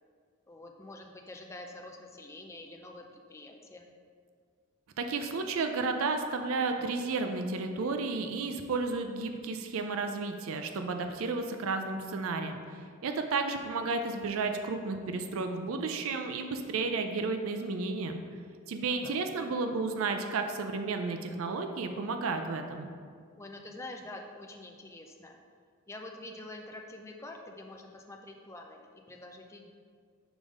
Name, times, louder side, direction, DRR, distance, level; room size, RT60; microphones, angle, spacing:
voice 1, 0.5-3.9 18.9-19.6 23.4-25.4 25.9-29.7, left 2 dB, 15° left, 2 dB, 0.4 m, -46 dB
voice 2, 5.0-18.2 18.7-22.9, right 4 dB, 75° right, 6 dB, 0.4 m, -32 dB
5.0 x 3.6 x 5.2 m, 2.1 s
head